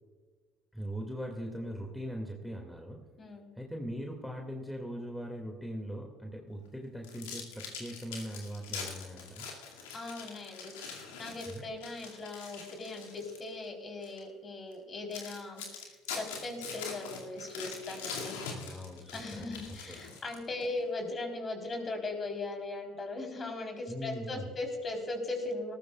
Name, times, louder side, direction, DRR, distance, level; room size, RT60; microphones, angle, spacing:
voice 1, 0.7-3.0 3.6-9.5 11.5-11.6 18.5-20.0 23.9-24.5, equal, ahead, 1 dB, 2.2 m, -40 dB
voice 2, 3.2-3.5 9.9-18.3 19.1-25.7, left 2 dB, 35° left, 3 dB, 3.8 m, -39 dB
sound 1, 7.0-13.5 14.0-14.2 14.7-14.8 15.1-20.6, left 5 dB, 75° left, 2.3 m, -43 dB
19.5 x 14.5 x 2.4 m, 1.5 s
hypercardioid pair, 65°, 0 cm